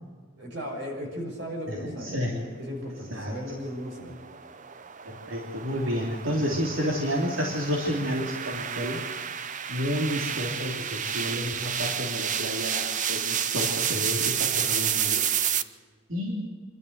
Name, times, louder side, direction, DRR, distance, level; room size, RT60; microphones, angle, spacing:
voice 1, 0.4-4.1, equal, 65° right, 1 dB, 6.5 m, -36 dB
voice 2, 1.7-2.4 3.1-3.3 5.0-9.0 9.7-15.2 15.5-15.6 16.1-16.4, equal, 90° right, -1 dB, 3.2 m, -30 dB
sound 1, 3.6-15.6, right 8 dB, 40° right, 0.7 m, -30 dB
26.5 x 12.5 x 8.2 m, 1.5 s
head